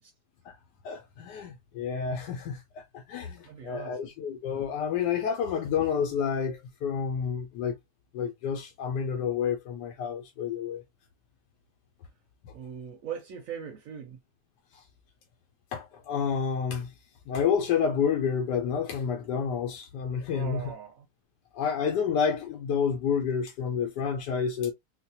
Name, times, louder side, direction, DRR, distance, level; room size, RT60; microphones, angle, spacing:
voice 1, 0.8-7.8 8.1-10.8 14.7-14.8 15.7-16.9 17.3-20.7 21.5-24.7, left 7 dB, 80° left, 1.2 m, -29 dB
voice 2, 3.4-4.1 12.5-14.2 20.3-21.1, right 8 dB, 70° right, 0.8 m, -40 dB
3.9 x 2.1 x 2.7 m
omnidirectional pair, 1.8 m